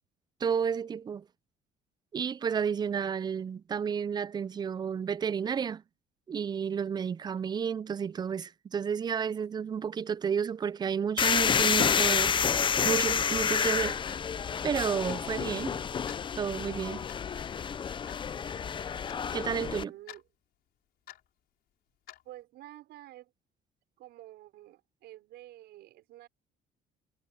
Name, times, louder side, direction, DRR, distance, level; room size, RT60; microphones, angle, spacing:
voice 1, 0.4-1.2 2.1-5.8 6.3-12.4 12.8-14.0 14.6-15.8 16.4-17.0 19.3-19.9, right 7 dB, 25° right, 0.4 m, -31 dB
sound 1, 11.2-19.8, left 7 dB, 30° left, 0.5 m, -29 dB
Clock, 13.1-13.3 14.1-14.3 15.1-15.2 16.1-16.3 17.1-17.3 18.1-18.2 19.1-19.2 20.1-20.2 21.1-21.3 22.1-22.2, left 13 dB, 65° left, 5.1 m, -48 dB
voice 2, 19.7-20.2 22.2-23.3 24.0-26.3, right 15 dB, 80° right, 5.8 m, -49 dB
cardioid pair, 110°, 17 cm